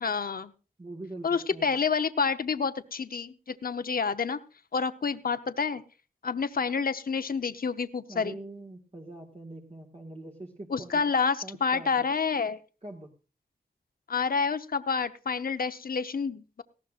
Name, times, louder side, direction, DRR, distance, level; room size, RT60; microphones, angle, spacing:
voice 1, 0.0-0.5 1.2-4.4 4.7-5.8 6.2-8.4 10.7-12.6 14.1-16.6, left 5 dB, 60° left, 10 dB, 0.8 m, -28 dB
voice 2, 0.8-1.7 8.1-11.1 11.4-12.1 12.8-13.1, right 2 dB, 35° right, -1 dB, 1.9 m, -43 dB
18.5 x 15.0 x 2.5 m, 0.33 s
wide cardioid pair, 60°, 17 cm